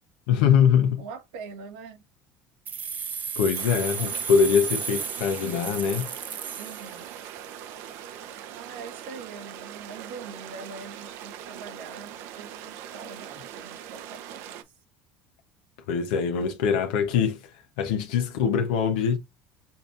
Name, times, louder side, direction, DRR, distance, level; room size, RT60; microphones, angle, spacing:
voice 1, 0.3-1.0 3.4-6.1 15.9-17.4 17.8-19.2, left 7 dB, 85° left, 0.9 m, -23 dB
voice 2, 1.0-2.0 6.6-7.1 8.5-14.6, right 5 dB, 85° right, 1.3 m, -43 dB
sound 1, 2.7-7.4, right 6 dB, 35° right, 0.7 m, -34 dB
sound 2, 3.5-14.6, right 10 dB, 70° right, 0.7 m, -41 dB
6.9 x 2.7 x 2.4 m
supercardioid pair, 100°, 5 cm